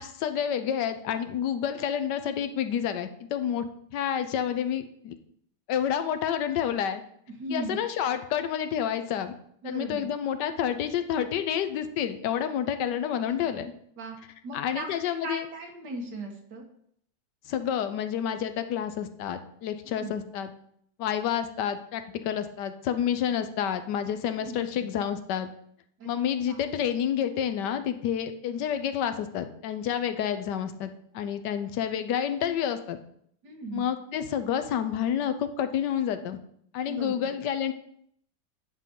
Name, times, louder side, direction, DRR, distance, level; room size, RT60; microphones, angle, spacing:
voice 1, 0.0-3.7 3.9-5.2 5.7-7.0 7.5-9.3 9.6-13.7 14.5-15.5 17.5-20.5 21.0-25.5 26.1-33.0 33.7-36.4 36.7-37.7, left 9 dB, 85° left, 10 dB, 1.3 m, -29 dB
voice 2, 7.4-7.8 9.6-10.1 13.2-13.3 14.0-14.2 14.4-14.9 15.2-16.6 20.0-20.2 24.4-24.6 26.0-26.1 26.5-26.6 33.4-33.8 36.8-37.3, right 2 dB, 75° right, 1 dB, 2.0 m, -37 dB
9.7 x 3.8 x 5.2 m, 0.67 s
omnidirectional pair, 1.8 m